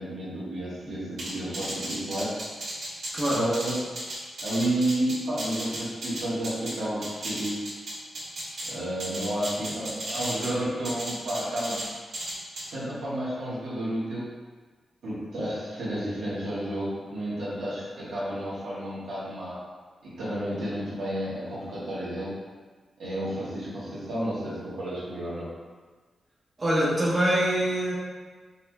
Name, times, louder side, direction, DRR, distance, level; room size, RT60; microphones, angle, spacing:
voice 1, 0.0-2.3 3.3-3.8 4.4-7.6 8.7-11.8 12.7-14.3 15.0-19.6 20.0-22.4 23.0-25.5, right 1 dB, 85° right, -9 dB, 1.4 m, -31 dB
sound 1, 1.2-6.7 7.0-8.7 9.0-10.5 10.8-11.9 12.1-12.6, right 1 dB, 65° right, 1.4 m, -34 dB
voice 2, 3.1-3.4 26.6-27.9, right 1 dB, 25° right, -7 dB, 0.9 m, -24 dB
5.5 x 2.9 x 2.3 m, 1.4 s
wide cardioid pair, 165°, 0 cm